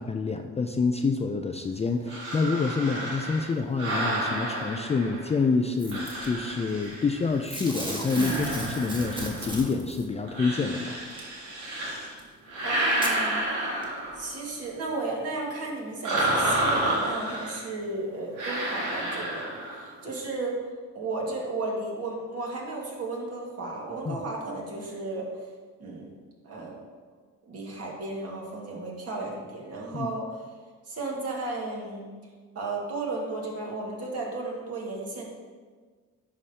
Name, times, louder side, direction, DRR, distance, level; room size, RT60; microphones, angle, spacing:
voice 1, 0.0-11.0 24.1-24.2 29.9-30.1, left 4 dB, 20° left, 5 dB, 0.4 m, -27 dB
sound 1, 2.1-5.4 5.9-7.5 8.0-9.7 10.3-12.1 12.5-14.4 16.0-17.7 18.4-19.9, right 1 dB, 90° right, 2.2 m, -30 dB
Packing tape duct tape / Tearing, 5.8-6.3 7.5-10.0 11.2-11.3 12.2-12.3 12.9-13.2 13.8-13.9, right 1 dB, 15° right, 1.5 m, -34 dB
voice 2, 12.6-13.5 14.2-20.6 20.9-25.3 25.8-26.1 26.4-26.8 27.5-30.3 30.9-32.1 32.6-35.2, right 2 dB, 55° right, -2 dB, 1.9 m, -34 dB
10.5 x 4.8 x 2.9 m, 1.5 s
cardioid pair, 90°, 30 cm